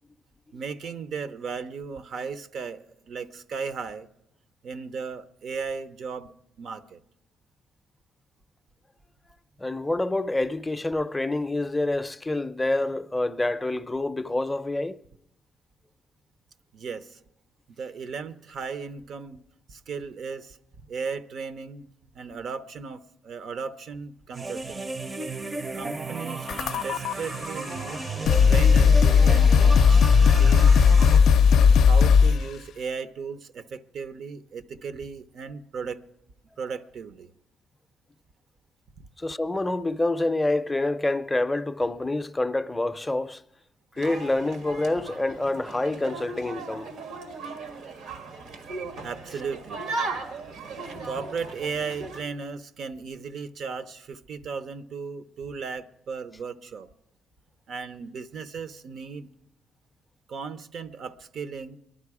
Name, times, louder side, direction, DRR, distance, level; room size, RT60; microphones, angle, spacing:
voice 1, 0.5-4.1 4.6-7.0 16.7-17.2 17.8-19.4 19.7-21.9 22.1-24.9 25.8-28.1 28.5-30.1 30.4-30.9 31.8-36.0 36.6-37.3 39.0-39.1 49.0-49.9 51.1-56.9 57.7-59.3 60.3-61.8, right 5 dB, 65° right, 0.7 m, -36 dB
voice 2, 9.6-15.0 39.2-43.4 44.0-46.9, left 2 dB, 15° left, 0.5 m, -27 dB
sound 1, 24.3-31.2, right 3 dB, 30° right, 0.6 m, -33 dB
sound 2, 26.5-27.1 27.9-28.0 28.2-32.5, left 6 dB, 75° left, 0.4 m, -17 dB
sound 3, 44.0-52.2, right 3 dB, 85° right, 1.5 m, -37 dB
23.0 x 11.0 x 4.8 m
cardioid pair, 90°, 0 cm